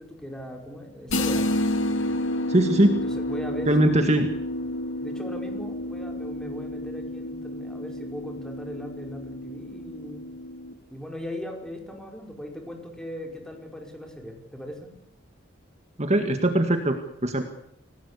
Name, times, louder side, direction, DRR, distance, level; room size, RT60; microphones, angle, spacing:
voice 1, 0.0-1.6 3.0-4.2 5.0-10.3 10.9-14.9 17.3-17.4, equal, 5° left, 3 dB, 5.2 m, -39 dB
sound 1, 1.1-10.7, left 1 dB, 85° left, 2.7 m, -30 dB
voice 2, 2.5-3.0 3.7-4.3 16.0-17.4, right 1 dB, 35° right, 6 dB, 1.9 m, -21 dB
28.0 x 18.0 x 8.4 m, 0.76 s
head